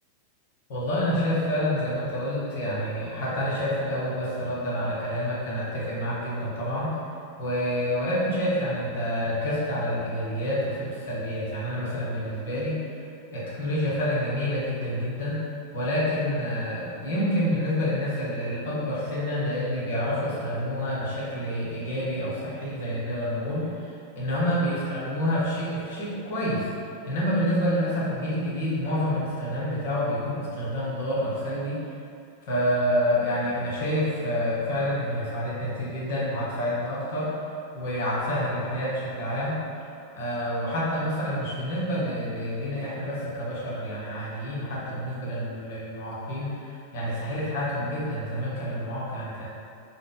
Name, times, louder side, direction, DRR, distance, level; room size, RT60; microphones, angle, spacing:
voice 1, 0.7-7.0 7.4-12.8 13.3-15.4 15.7-26.7 27.0-31.8 32.4-37.3 37.7-39.6 40.1-49.5, equal, 50° left, -7 dB, 1.2 m, -28 dB
3.7 x 2.3 x 3.7 m, 2.5 s
figure-of-eight pair, 90°, 0 cm